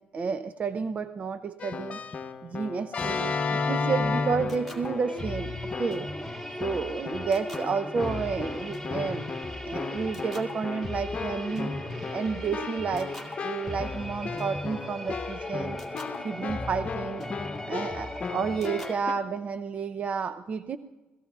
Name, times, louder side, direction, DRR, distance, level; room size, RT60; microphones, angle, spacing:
voice 1, 0.0-2.0 2.4-5.5 5.8-6.1 6.6-9.3 9.6-11.7 12.1-13.2 13.4-15.8 16.2-17.3 17.7-20.8, right 5 dB, 40° right, 11 dB, 0.5 m, -31 dB
Keyboard (musical), 1.6-5.3 5.7-6.2 6.6-19.1, left 4 dB, 40° left, 1.0 m, -35 dB
sound 1, 4.0-18.9, left 1 dB, ahead, 2.3 m, -37 dB
26.5 x 17.5 x 2.4 m, 1.1 s
cardioid pair, 90°, 4 cm